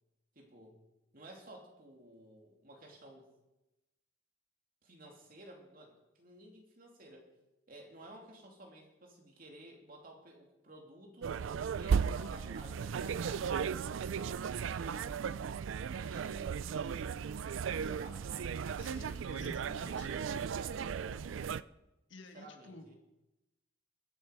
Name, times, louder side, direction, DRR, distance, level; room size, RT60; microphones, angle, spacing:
voice 1, 0.3-0.8 1.1-3.3 4.8-7.3 7.7-11.4 11.7-14.4 14.7-15.2 15.8-16.6 17.5-18.9 19.3-21.4 22.3-23.0, right 1 dB, 50° right, 1 dB, 2.8 m, -54 dB
sound 1, 11.2-21.6, right 6 dB, 85° right, 0.4 m, -36 dB
voice 2, 18.8-20.1 22.1-22.8, left 2 dB, 75° left, 5 dB, 1.7 m, -50 dB
22.5 x 8.0 x 5.2 m, 0.98 s
head